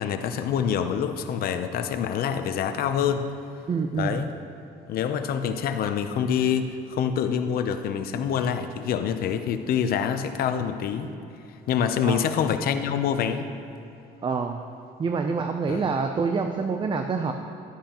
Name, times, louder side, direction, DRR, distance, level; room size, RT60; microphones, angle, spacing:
voice 1, 0.0-3.3 4.0-4.3 4.9-11.1 11.7-13.5 15.7-15.9, left 8 dB, 65° left, 8 dB, 0.6 m, -26 dB
voice 2, 3.7-4.2 12.0-12.3 14.2-14.6 15.0-17.3, right 5 dB, 30° right, 5 dB, 0.5 m, -26 dB
11.5 x 10.0 x 3.0 m, 2.8 s
cardioid pair, 110°, 17 cm